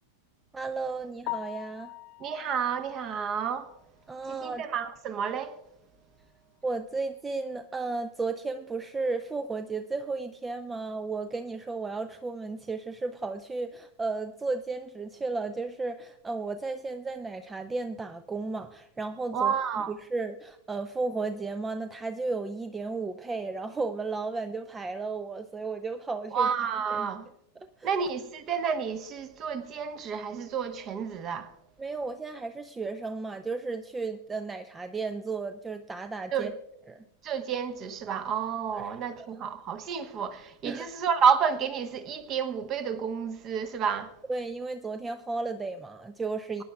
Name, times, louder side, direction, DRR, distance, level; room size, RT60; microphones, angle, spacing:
voice 1, 0.5-1.9 4.1-4.6 6.6-19.5 19.9-26.5 26.9-27.1 27.8-28.0 31.8-36.5 36.9-37.0 38.7-39.3 40.6-40.9 44.3-46.6, right 3 dB, 15° right, 0.4 m, -34 dB
Piano, 1.2-5.2 5.6-5.7 6.2-6.3 6.6-6.7 9.8-9.9 18.4-18.6, left 20 dB, 45° left, 0.6 m, -43 dB
voice 2, 2.2-3.7 4.3-5.6 19.3-19.9 26.3-27.3 27.8-31.5 36.3-36.5 37.2-44.1, right 7 dB, 35° right, 1.0 m, -30 dB
22.5 x 10.0 x 2.3 m
figure-of-eight pair, 90°, 0 cm